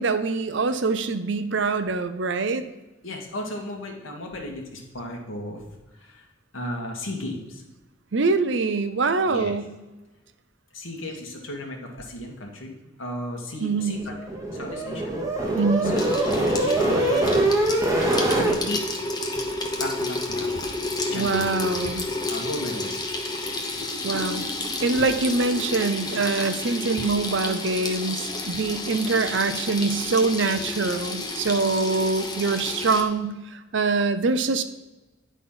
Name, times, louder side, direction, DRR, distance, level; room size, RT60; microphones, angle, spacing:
voice 1, 0.0-2.6 8.1-9.7 13.6-14.0 15.5-15.9 21.1-22.0 24.0-24.4 24.8-34.6, right 3 dB, 65° right, 10 dB, 0.6 m, -24 dB
voice 2, 3.0-5.6 6.0-6.3 6.5-7.6 9.3-9.6 10.7-12.7 13.0-14.1 14.5-15.2 15.8-17.5 18.3-18.8 19.8-20.5 21.1-21.4 22.3-23.0, left 1 dB, 85° left, 1 dB, 1.8 m, -34 dB
sound 1, 13.9-18.6, right 1 dB, 15° right, 1.2 m, -23 dB
Water tap faucet / Sink (filling or washing), 16.0-33.0, left 2 dB, 20° left, 0.9 m, -30 dB
10.0 x 4.2 x 5.5 m, 1.1 s
head